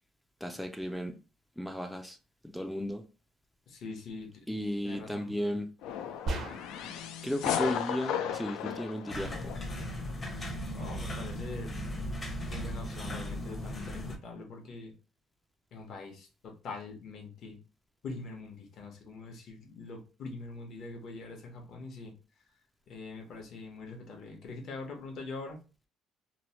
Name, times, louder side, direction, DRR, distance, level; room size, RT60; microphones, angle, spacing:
voice 1, 0.4-1.2 1.6-2.2 2.4-3.0 4.5-5.7 7.2-9.5, equal, ahead, 0.3 m, -34 dB
voice 2, 3.7-4.4 4.8-5.3 10.7-11.7 12.5-14.9 15.7-17.6 18.0-22.1 22.9-25.6, left 3 dB, 55° left, 0.9 m, -43 dB
sound 1, 5.8-9.9, left 9 dB, 80° left, 0.4 m, -35 dB
sound 2, 6.3-7.0, right 2 dB, 55° right, 0.6 m, -35 dB
sound 3, 9.1-14.2, equal, 25° left, 0.7 m, -37 dB
2.9 x 2.1 x 2.9 m
cardioid pair, 120°, 0 cm